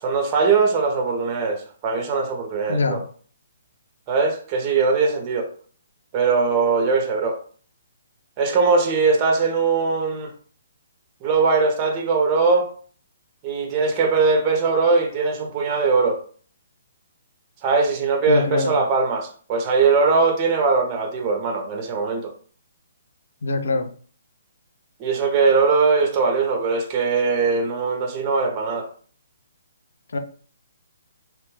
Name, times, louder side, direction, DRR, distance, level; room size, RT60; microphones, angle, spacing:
voice 1, 0.0-3.0 4.1-5.5 6.1-7.4 8.4-10.3 11.2-12.7 13.4-16.2 17.6-22.3 25.0-28.9, right 4 dB, 25° right, 3 dB, 0.6 m, -20 dB
voice 2, 2.7-3.0 18.3-18.8 23.4-23.9 30.1-30.2, left 3 dB, 85° left, 8 dB, 0.4 m, -23 dB
2.9 x 2.1 x 3.2 m, 0.44 s
hypercardioid pair, 160°, 0 cm